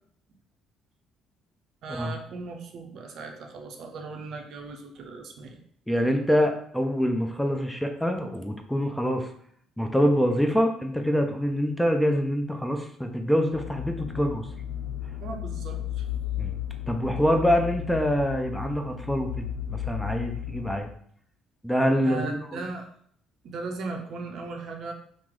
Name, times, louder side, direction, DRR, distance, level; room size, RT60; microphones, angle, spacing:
voice 1, 1.8-5.6 15.2-16.0 22.0-22.9 23.4-24.9, right 3 dB, 60° right, 3 dB, 0.5 m, -37 dB
voice 2, 5.9-9.3 9.8-14.5 16.4-16.6 16.9-20.9 21.6-22.6, equal, 5° left, 4 dB, 0.5 m, -25 dB
sound 1, 13.5-20.8, left 10 dB, 75° left, 0.5 m, -34 dB
2.9 x 2.0 x 3.6 m, 0.62 s
hypercardioid pair, 55°, 0 cm